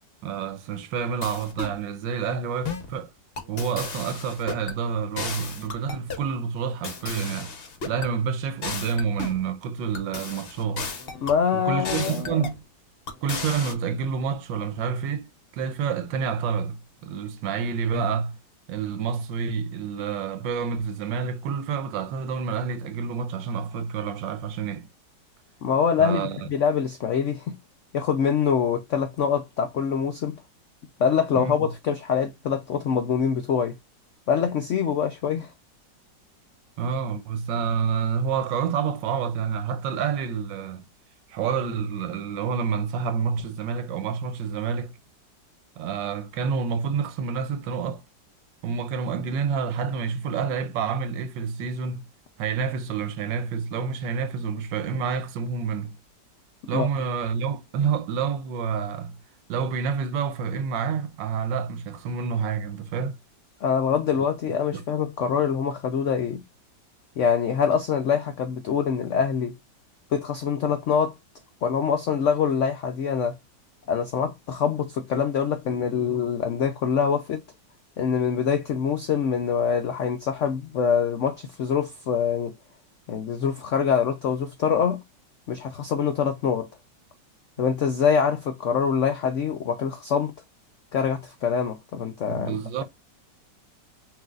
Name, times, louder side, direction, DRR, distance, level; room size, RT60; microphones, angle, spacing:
voice 1, 0.2-3.1 3.5-7.5 7.8-10.9 11.5-12.6 13.2-18.4 18.7-24.9 26.0-26.5 31.3-31.7 36.8-40.8 41.3-44.9 45.8-48.0 48.6-52.0 52.4-56.0 56.7-59.2 59.5-63.2 64.7-64.8 92.3-92.8, right 6 dB, 85° right, 1.4 m, -28 dB
sound 1, 1.2-1.8 2.6-2.9 3.4-4.8 5.2-6.3 6.8-8.1 8.6-9.4 9.9-11.4 11.8-12.6 13.1-13.7, left 4 dB, 45° left, 0.8 m, -34 dB
voice 2, 11.2-12.4 25.6-27.6 27.9-30.4 31.0-33.8 34.3-35.5 56.7-56.9 63.6-66.4 67.2-69.6 70.1-71.1 71.6-73.4 73.9-77.4 78.0-82.6 83.1-85.0 85.5-86.7 87.6-90.3 90.9-92.8, left 7 dB, 80° left, 0.6 m, -24 dB
5.8 x 2.7 x 2.4 m
omnidirectional pair, 2.0 m